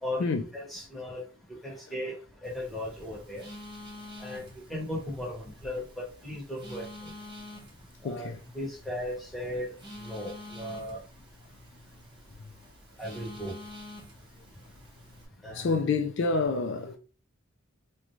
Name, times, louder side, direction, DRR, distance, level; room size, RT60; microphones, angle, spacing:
voice 1, 0.0-1.2 1.6-2.1 2.4-3.4 4.2-6.8 8.0-9.7 10.0-11.0 13.0-13.5 15.4-15.8, left 1 dB, ahead, 1.1 m, -36 dB
Telephone, 2.4-15.2, left 1 dB, 25° right, 0.9 m, -48 dB
voice 2, 8.0-8.4 15.5-17.0, left 4 dB, 60° left, 0.4 m, -28 dB
3.8 x 2.2 x 3.0 m
head